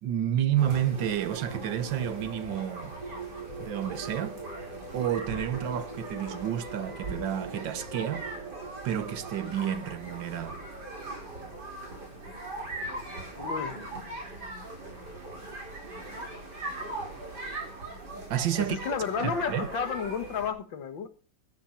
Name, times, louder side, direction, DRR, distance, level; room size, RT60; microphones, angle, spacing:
voice 1, 0.0-3.0 3.6-4.4 4.9-8.3 8.8-10.6 18.3-18.8 19.5-19.7, right 10 dB, 85° right, 1.7 m, -30 dB
sound 1, 0.6-20.5, right 2 dB, 60° right, 5.0 m, -40 dB
sound 2, 1.0-12.7, right 3 dB, 20° right, 2.1 m, -44 dB
voice 2, 13.4-14.2 18.6-21.1, left 6 dB, 85° left, 2.2 m, -32 dB
14.0 x 8.7 x 5.8 m
omnidirectional pair, 2.0 m